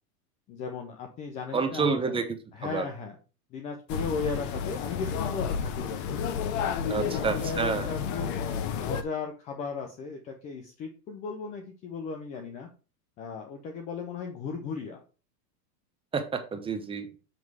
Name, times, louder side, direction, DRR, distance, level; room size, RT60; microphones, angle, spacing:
voice 1, 0.5-2.2 2.5-3.2 3.5-6.2 6.8-12.7 13.2-15.0, left 5 dB, 15° left, 4 dB, 0.4 m, -36 dB
voice 2, 1.5-2.9 6.9-7.9 16.1-17.1, right 5 dB, 10° right, 5 dB, 0.8 m, -29 dB
sound 1, 3.9-9.0, left 7 dB, 35° left, 0.8 m, -31 dB
7.4 x 3.1 x 6.0 m, 0.35 s
supercardioid pair, 140°, 49 cm